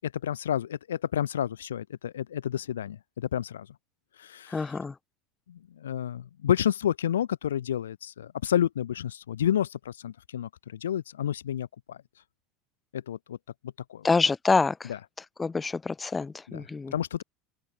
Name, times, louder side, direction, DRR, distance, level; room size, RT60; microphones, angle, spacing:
voice 1, 0.0-3.7 4.2-4.8 5.5-12.0 12.9-13.4 13.9-14.1 14.9-15.0 16.5-16.6 16.9-17.2, left 10 dB, 85° left, 0.6 m, -30 dB
voice 2, 4.5-4.9 14.0-14.9 15.4-16.9, left 4 dB, 20° left, 1.3 m, -26 dB
hypercardioid pair, 85°, 0 cm